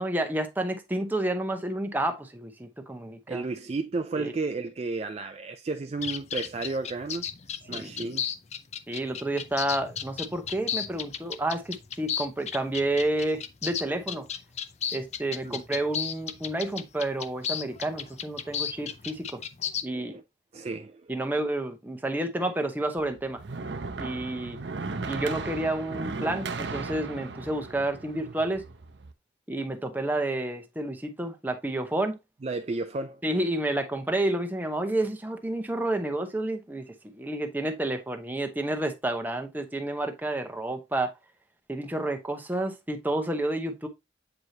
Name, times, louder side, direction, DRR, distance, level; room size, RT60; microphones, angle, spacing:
voice 1, 0.0-3.4 4.2-4.3 7.7-8.1 8.9-14.3 14.9-19.4 19.8-20.2 21.1-23.4 24.0-24.6 25.1-28.6 29.5-32.2 33.2-36.8 37.1-41.1 41.7-43.9, right 1 dB, 10° right, 0.8 m, -30 dB
voice 2, 3.3-7.3 7.7-8.2 15.4-15.6 19.8-20.2 20.5-21.1 32.4-33.2, right 3 dB, 35° right, 0.3 m, -33 dB
sound 1, 6.0-19.8, left 8 dB, 35° left, 0.5 m, -34 dB
sound 2, 23.0-29.1, right 3 dB, 65° right, 0.7 m, -36 dB
7.9 x 4.8 x 2.8 m
head